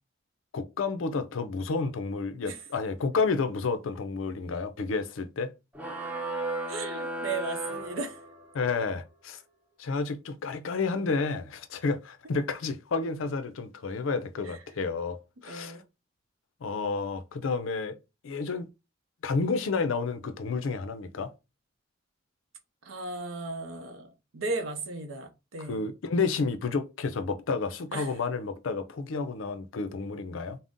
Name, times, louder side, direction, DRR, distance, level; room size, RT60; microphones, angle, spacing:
voice 1, 0.5-5.5 8.5-9.4 9.8-15.8 16.6-18.0 18.2-18.7 19.2-21.3 25.7-30.6, left 4 dB, 70° left, 0.5 m, -30 dB
sound 1, 5.7-8.6, right 2 dB, 5° right, 0.5 m, -35 dB
voice 2, 6.7-8.2 14.4-14.6 15.5-15.8 22.8-25.8 27.9-28.1, right 3 dB, 75° right, 0.7 m, -36 dB
2.5 x 2.0 x 3.5 m
head